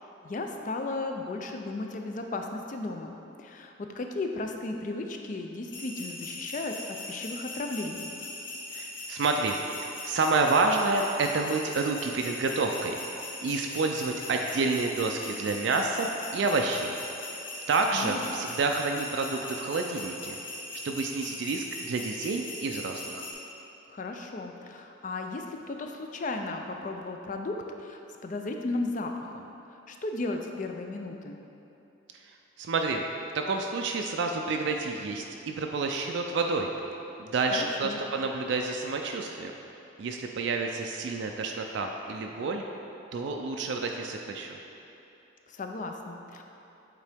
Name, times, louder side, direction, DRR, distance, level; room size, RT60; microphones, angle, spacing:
voice 1, 0.2-8.1 17.9-18.4 23.9-29.5 29.9-31.4 37.5-38.0 45.5-46.4, left 2 dB, 40° left, 4 dB, 0.4 m, -35 dB
sound 1, 5.7-23.3, left 1 dB, 65° left, 1.0 m, -40 dB
voice 2, 8.7-13.0 13.4-17.0 17.7-20.4 20.8-23.3 32.1-33.0 33.3-36.7 37.2-39.5 40.0-42.6 43.1-44.6, right 3 dB, 60° right, 3 dB, 0.3 m, -29 dB
8.1 x 3.7 x 3.4 m, 2.9 s
head